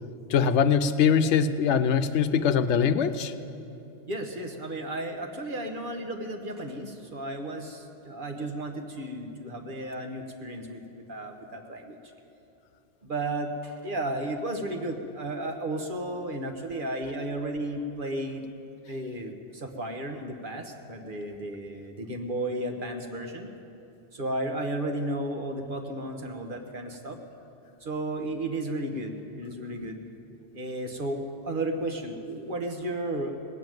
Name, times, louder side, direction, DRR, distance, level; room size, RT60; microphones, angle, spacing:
voice 1, 0.3-3.3, left 7 dB, 85° left, 10 dB, 0.9 m, -22 dB
voice 2, 4.1-12.0 13.0-18.4 18.9-23.5 24.1-27.2 27.8-30.0 30.5-33.3, right 1 dB, 50° right, 4 dB, 1.3 m, -33 dB
18.0 x 7.8 x 9.1 m, 2.7 s
omnidirectional pair, 1.2 m